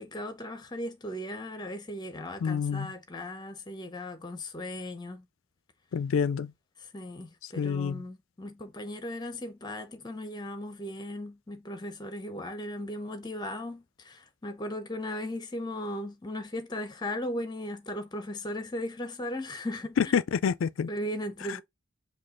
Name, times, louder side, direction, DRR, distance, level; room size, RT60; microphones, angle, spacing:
voice 1, 0.0-5.3 6.8-20.1 20.9-21.6, left 1 dB, 20° left, 0.6 m, -37 dB
voice 2, 2.4-2.9 5.9-6.5 7.6-8.0 20.1-20.9, left 6 dB, 60° left, 0.3 m, -27 dB
5.3 x 2.3 x 3.6 m
head